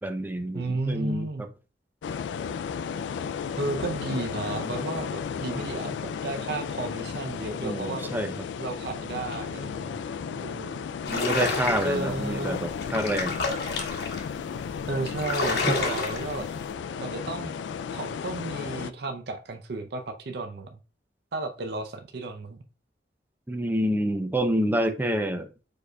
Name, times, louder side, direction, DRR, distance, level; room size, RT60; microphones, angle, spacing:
voice 1, 0.0-1.3 7.6-8.5 11.1-13.4 15.7-15.8 23.5-25.5, equal, 10° right, 0.5 m, -28 dB
voice 2, 0.5-1.5 3.6-8.1 8.6-10.0 10.3-10.8 11.8-12.6 14.9-16.5 17.0-17.5 17.9-20.8 21.3-22.6, right 2 dB, 65° right, 0.6 m, -33 dB
sound 1, 2.0-18.9, left 6 dB, 90° left, 0.3 m, -34 dB
sound 2, 11.0-12.1 12.7-14.2 14.7-14.8 15.1-16.4, left 3 dB, 65° left, 1.2 m, -29 dB
4.7 x 4.6 x 2.2 m
head